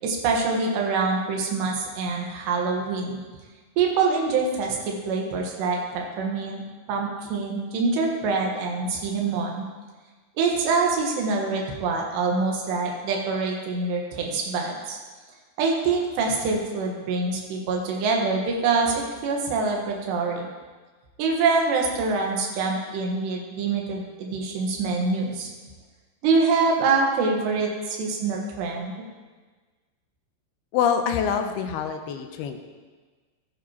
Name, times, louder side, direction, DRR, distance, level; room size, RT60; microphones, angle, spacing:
voice 1, 0.0-3.2 3.8-6.6 6.9-9.7 10.4-15.0 15.6-20.5 21.2-25.5 26.2-28.9, right 4 dB, 90° right, 0 dB, 3.6 m, -25 dB
voice 2, 30.7-32.7, left 7 dB, 80° left, 6 dB, 2.5 m, -25 dB
14.5 x 11.0 x 2.9 m, 1.4 s
omnidirectional pair, 4.8 m